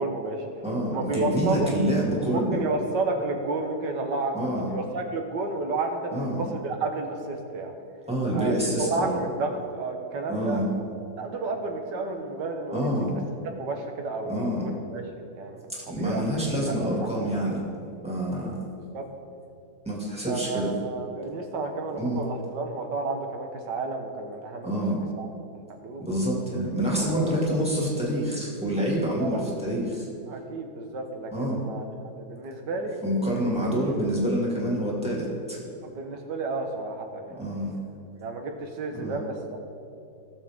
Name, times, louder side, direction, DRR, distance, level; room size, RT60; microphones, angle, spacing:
voice 1, 0.0-0.4 0.9-1.7 2.3-7.7 8.3-10.7 11.2-12.9 13.6-15.0 15.3-15.6 15.9-17.1 18.9-19.0 20.3-24.8 25.2-25.3 25.8-26.0 27.0-27.6 28.9-29.5 30.3-31.9 32.1-33.0 35.8-37.4 38.2-39.6, right 3 dB, 75° right, 4 dB, 1.7 m, -31 dB
voice 2, 0.6-2.6 4.3-4.7 6.1-6.4 8.1-9.2 10.3-10.7 12.7-13.1 14.3-14.6 15.9-17.6 18.0-18.6 19.8-20.7 22.0-22.2 24.6-25.0 26.0-30.1 31.3-31.6 33.0-35.6 37.4-37.8 39.0-39.2, equal, 5° right, -5 dB, 2.3 m, -27 dB
18.0 x 7.2 x 3.6 m, 2.6 s
omnidirectional pair, 1.9 m